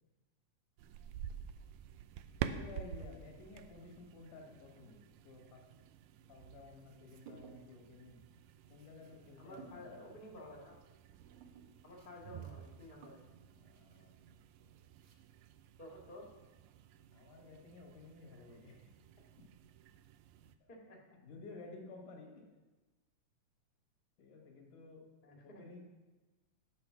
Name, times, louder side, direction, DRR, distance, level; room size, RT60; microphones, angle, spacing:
sound 1, 0.8-20.6, right 9 dB, 80° right, 1.8 m, -49 dB
voice 1, 2.4-5.7 6.3-8.2 8.7-10.1 13.5-14.8 17.1-18.9 19.4-19.5 21.1-22.5 24.2-25.1 25.4-25.8, left 3 dB, 80° left, 1 dB, 3.2 m, -54 dB
sound 2, 6.6-7.9 8.2-15.5, right 4 dB, 65° right, 1.4 m, -60 dB
voice 2, 9.3-10.8 11.8-13.2 15.8-16.3 20.7-21.0 25.2-25.6, left 1 dB, 25° left, -1 dB, 1.2 m, -52 dB
8.8 x 7.8 x 5.9 m, 1.2 s
omnidirectional pair, 3.6 m